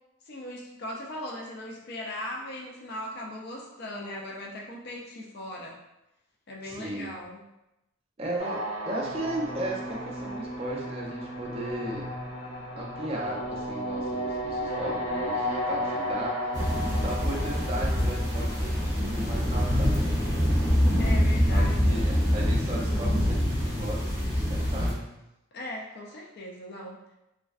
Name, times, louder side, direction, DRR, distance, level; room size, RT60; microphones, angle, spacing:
voice 1, 0.3-5.8 6.5-7.5 16.6-16.9 21.0-22.0 25.5-27.0, left 1 dB, 50° left, -2 dB, 0.3 m, -39 dB
voice 2, 6.6-7.2 8.2-12.1 12.8-20.5 21.5-25.1, right 1 dB, 30° right, -3 dB, 0.4 m, -36 dB
sound 1, 8.4-19.5, equal, 70° left, 1.0 m, -34 dB
sound 2, 16.5-24.9, equal, 15° left, 0.6 m, -25 dB
2.5 x 2.1 x 2.3 m, 0.91 s
head